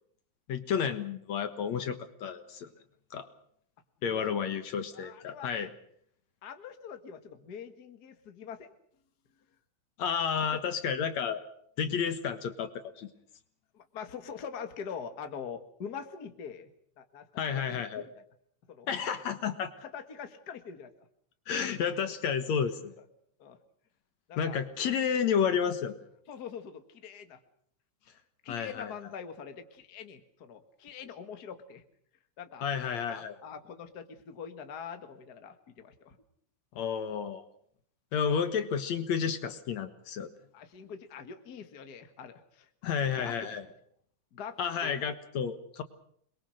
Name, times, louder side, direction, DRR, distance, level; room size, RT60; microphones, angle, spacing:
voice 1, 0.5-2.7 3.1-3.3 4.0-5.7 10.0-11.4 11.8-13.1 17.4-18.0 18.9-19.7 21.5-22.9 24.4-26.0 28.5-28.9 32.6-33.4 36.8-37.4 38.1-40.3 42.8-43.6 44.6-45.8, left 7 dB, 65° left, 10 dB, 2.6 m, -31 dB
voice 2, 4.0-4.3 4.9-5.7 6.4-8.7 13.7-16.7 17.0-18.2 18.7-18.9 19.8-20.9 23.4-23.6 24.3-24.6 26.3-27.4 28.4-31.8 32.4-32.7 33.1-36.2 40.5-42.7 43.2-43.6 44.3-45.1, left 7 dB, 35° left, 8 dB, 1.9 m, -44 dB
27.5 x 22.5 x 6.5 m, 0.66 s
omnidirectional pair, 3.5 m